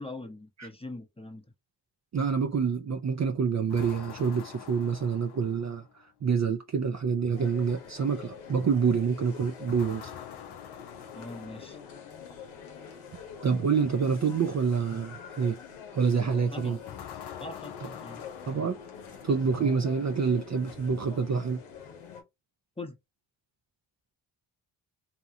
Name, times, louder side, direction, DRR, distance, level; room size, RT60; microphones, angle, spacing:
voice 1, 0.0-1.5 11.1-11.8 16.5-16.8 17.4-18.2 22.8-22.9, left 2 dB, 10° left, 0.8 m, -42 dB
voice 2, 2.1-5.9 6.2-10.1 13.4-15.6 15.9-16.8 18.5-18.8 19.2-21.6, right 5 dB, 35° right, 0.5 m, -27 dB
sound 1, 3.7-6.0 9.7-12.2 16.9-19.5, left 10 dB, 55° left, 0.6 m, -46 dB
sound 2, 7.3-22.2, left 6 dB, 90° left, 0.9 m, -46 dB
2.8 x 2.3 x 2.7 m
supercardioid pair, 50°, 48 cm